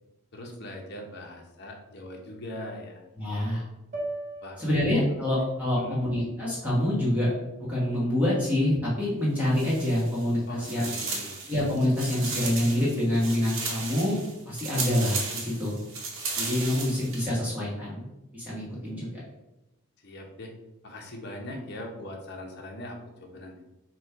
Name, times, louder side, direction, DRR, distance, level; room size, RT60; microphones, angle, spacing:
voice 1, 0.3-3.0 4.4-5.4 5.8-6.0 10.5-11.4 20.0-20.5 20.8-23.6, left 1 dB, 50° left, 1 dB, 0.7 m, -41 dB
voice 2, 3.2-3.6 4.6-7.3 7.7-10.9 11.5-14.2 14.5-15.8 16.4-18.1 18.3-19.1, left 1 dB, 5° right, -7 dB, 1.1 m, -26 dB
sound 1, 3.9-8.2, right 1 dB, 35° right, 0.6 m, -42 dB
sound 2, 9.4-10.3 10.6-17.3, right 4 dB, 60° right, 0.9 m, -35 dB
4.1 x 2.3 x 4.5 m, 0.95 s
head